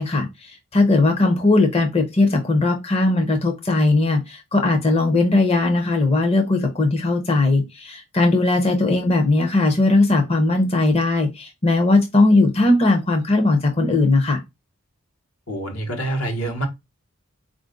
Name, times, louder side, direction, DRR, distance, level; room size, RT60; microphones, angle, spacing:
voice 1, 0.0-14.4, left 2 dB, 25° left, 0.6 m, -18 dB
voice 2, 15.5-16.7, right 1 dB, 75° left, 1.1 m, -26 dB
4.2 x 2.5 x 3.7 m
head